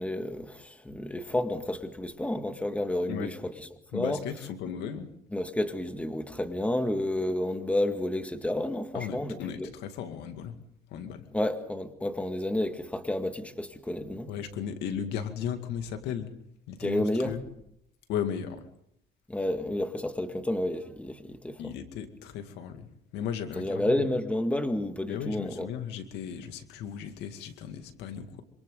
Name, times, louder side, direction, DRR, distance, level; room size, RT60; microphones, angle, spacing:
voice 1, 0.0-3.5 3.9-4.2 5.3-9.7 11.3-14.3 16.8-17.3 19.3-21.6 23.6-25.7, left 1 dB, 10° left, 2.0 m, -30 dB
voice 2, 3.9-5.1 8.9-10.6 10.9-11.3 14.3-16.3 16.7-17.4 18.1-18.7 21.6-24.1 25.1-28.4, left 8 dB, 90° left, 2.3 m, -36 dB
26.5 x 26.0 x 4.0 m
cardioid pair, 110°, 17 cm